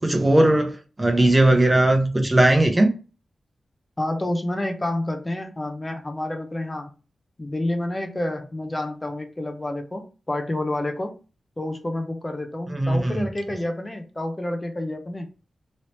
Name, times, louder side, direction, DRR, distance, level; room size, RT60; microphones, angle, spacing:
voice 1, 0.0-2.9 12.7-13.2, right 1 dB, 25° right, 0.8 m, -18 dB
voice 2, 4.0-6.9 7.4-11.1 11.6-15.3, left 1 dB, 25° left, 0.7 m, -29 dB
3.1 x 2.7 x 3.0 m
cardioid pair, 50°, 0 cm